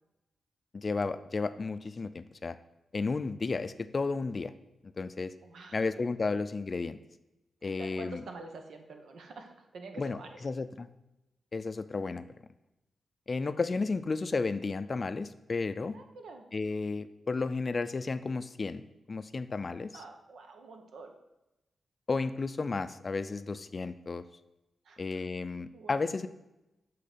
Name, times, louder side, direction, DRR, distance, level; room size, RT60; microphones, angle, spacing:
voice 1, 0.7-2.5 2.9-4.5 5.0-5.3 5.7-7.0 7.6-8.2 10.0-10.2 10.4-10.9 11.5-12.2 13.3-15.9 16.5-18.8 19.1-19.9 22.1-24.2 25.0-26.3, left 4 dB, 40° left, 12 dB, 0.4 m, -33 dB
voice 2, 5.4-5.9 7.6-10.4 15.9-16.5 19.9-21.1 24.8-25.2 25.7-26.1, right 3 dB, 85° right, 5 dB, 0.9 m, -47 dB
7.6 x 3.8 x 6.6 m, 0.94 s
wide cardioid pair, 100°, 0 cm